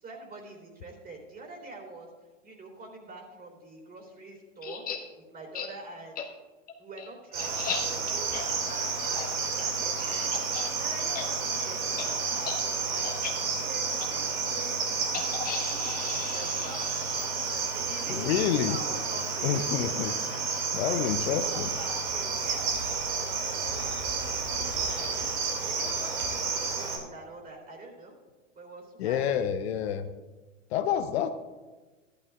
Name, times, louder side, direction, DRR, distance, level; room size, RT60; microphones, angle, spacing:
voice 1, 0.0-2.1 2.4-4.8 5.3-6.2 6.8-15.8 16.1-16.9 17.3-22.7 23.2-25.3 25.6-28.1 28.5-29.3, right 2 dB, 25° right, 1 dB, 3.2 m, -45 dB
sound 1, 4.6-5.0 5.5-5.7 6.2-6.3 6.7-10.7 11.0-11.3 11.5-11.7 12.0-12.1 12.4-12.6 13.0-13.3 14.0-14.1 15.1-17.5, left 7 dB, 20° left, 1.2 m, -37 dB
Cricket, 7.3-27.0, right 5 dB, 65° right, 2.4 m, -31 dB
voice 2, 18.1-18.8 19.4-20.1 20.7-21.7 29.0-30.1 30.7-31.3, left 9 dB, 55° left, 9 dB, 0.7 m, -28 dB
14.5 x 11.5 x 2.4 m, 1.2 s
hypercardioid pair, 105°, 38 cm